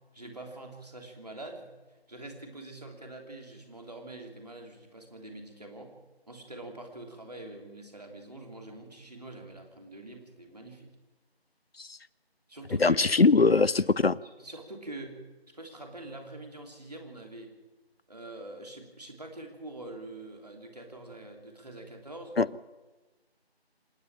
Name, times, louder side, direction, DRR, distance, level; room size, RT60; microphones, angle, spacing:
voice 1, 0.1-1.6 2.1-6.0 6.3-10.9 12.5-13.1 13.8-13.9 14.2-15.2 15.5-17.5 18.1-22.4, right 2 dB, 40° right, 3 dB, 3.2 m, -44 dB
voice 2, 12.8-14.1 22.4-22.5, left 4 dB, 70° left, 22 dB, 0.6 m, -21 dB
27.5 x 11.0 x 8.8 m, 1.2 s
figure-of-eight pair, 175°, 32 cm